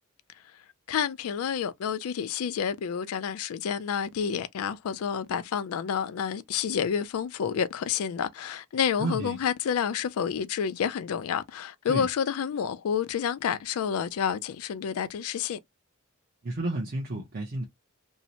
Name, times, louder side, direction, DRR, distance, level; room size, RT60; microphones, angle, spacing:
voice 1, 0.9-15.6, left 7 dB, 90° left, 0.4 m, -29 dB
voice 2, 9.0-9.4 11.9-12.1 16.4-17.6, right 2 dB, 45° right, 0.6 m, -31 dB
2.7 x 2.0 x 2.7 m
head